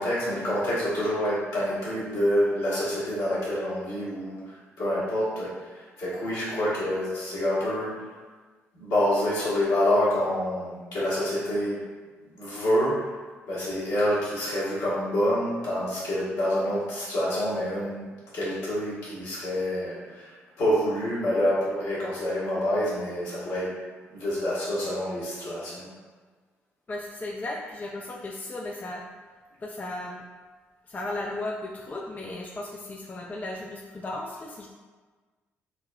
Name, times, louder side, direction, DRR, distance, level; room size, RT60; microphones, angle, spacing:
voice 1, 0.0-8.0 8.7-11.8 12.2-13.1 13.5-18.1 18.3-20.3 20.6-23.7 24.1-25.9, equal, 65° left, -9 dB, 1.2 m, -27 dB
voice 2, 26.9-29.0 29.6-30.2 30.9-34.7, left 2 dB, 25° left, -1 dB, 0.4 m, -35 dB
3.8 x 2.1 x 2.4 m, 1.4 s
figure-of-eight pair, 40°, 7 cm